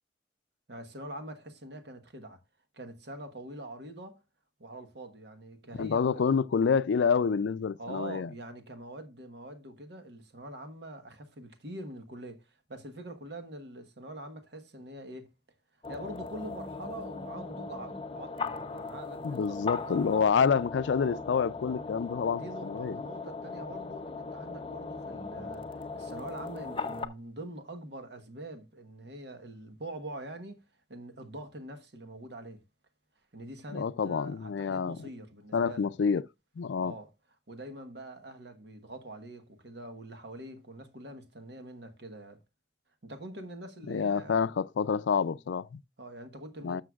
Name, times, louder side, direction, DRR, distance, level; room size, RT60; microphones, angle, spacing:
voice 1, 0.7-2.4 2.7-4.2 4.6-6.2 7.8-15.3 15.9-20.3 21.0-21.2 22.3-30.6 30.9-32.6 33.3-35.9 36.8-37.1 37.5-42.4 43.0-44.4 46.0-46.8, right 1 dB, 70° right, 1.2 m, -44 dB
voice 2, 5.8-8.3 19.2-23.0 33.7-35.0 35.5-36.2 36.6-36.9 43.9-45.8 46.6-46.8, left 6 dB, 85° left, 0.4 m, -28 dB
sound 1, 15.8-27.1, left 4 dB, 30° left, 0.6 m, -39 dB
12.5 x 6.6 x 2.3 m
head